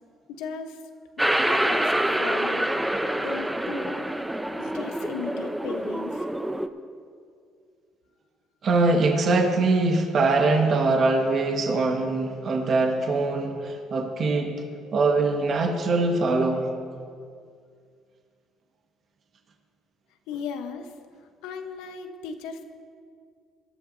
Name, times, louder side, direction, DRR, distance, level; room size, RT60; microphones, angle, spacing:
voice 1, 0.3-0.8 1.2-1.9 2.2-2.7 3.2-4.1 4.6-6.3 20.3-20.9 21.4-22.6, left 6 dB, 80° left, 7 dB, 1.0 m, -36 dB
sound 1, 1.2-6.7, right 1 dB, 5° right, 0.8 m, -26 dB
voice 2, 8.6-14.5 14.9-16.6, right 3 dB, 55° right, 2 dB, 1.6 m, -22 dB
19.5 x 13.0 x 2.8 m, 2.2 s
supercardioid pair, 70°, 0 cm